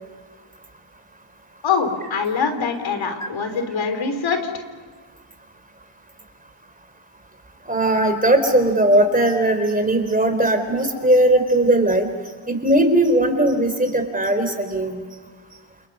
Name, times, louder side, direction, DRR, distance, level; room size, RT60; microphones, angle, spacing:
voice 1, 1.6-4.4, left 5 dB, 70° left, 7 dB, 3.7 m, -23 dB
voice 2, 7.7-12.1 12.5-15.0, right 1 dB, 20° right, 6 dB, 4.1 m, -18 dB
29.0 x 29.0 x 5.6 m, 1.4 s
cardioid pair, 95°, 47 cm